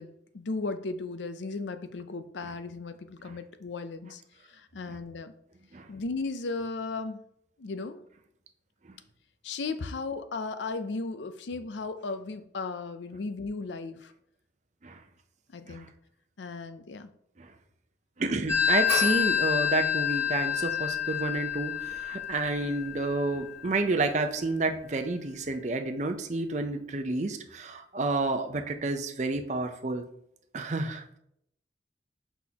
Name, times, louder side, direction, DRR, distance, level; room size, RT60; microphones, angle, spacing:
voice 1, 0.0-4.2 4.5-5.3 5.9-7.2 7.6-8.0 9.4-14.1 15.5-15.9 16.4-17.1, left 3 dB, 80° left, 10 dB, 0.5 m, -36 dB
voice 2, 18.2-30.0 30.5-31.2, right 2 dB, 40° right, 6 dB, 0.6 m, -30 dB
Telephone, 18.5-23.8, left 9 dB, 15° left, 1.0 m, -28 dB
6.2 x 5.6 x 2.9 m, 0.72 s
head